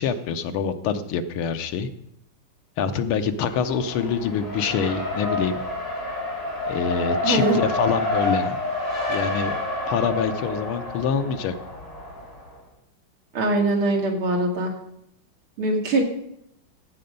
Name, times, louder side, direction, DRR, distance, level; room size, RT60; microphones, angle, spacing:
voice 1, 0.0-1.9 2.8-5.6 6.7-8.6 9.1-9.5 9.9-11.5, left 6 dB, 90° left, 9 dB, 1.8 m, -25 dB
Race car auto racing, 3.5-12.5, left 2 dB, 70° left, 5.3 m, -28 dB
voice 2, 7.2-7.6 13.3-14.7 15.6-16.0, right 2 dB, 80° right, 1 dB, 3.0 m, -22 dB
15.5 x 7.8 x 5.3 m, 0.78 s
omnidirectional pair, 2.3 m